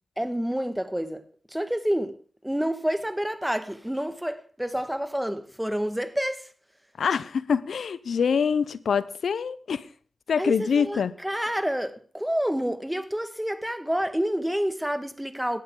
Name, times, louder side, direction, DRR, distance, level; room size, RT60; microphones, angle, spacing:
voice 1, 0.2-1.2 1.5-2.2 2.4-6.5 10.4-15.6, equal, 5° right, 1.5 m, -28 dB
voice 2, 7.0-9.8 10.3-11.1, left 6 dB, 90° left, 0.5 m, -25 dB
17.5 x 12.5 x 3.7 m
cardioid pair, 45°, 0 cm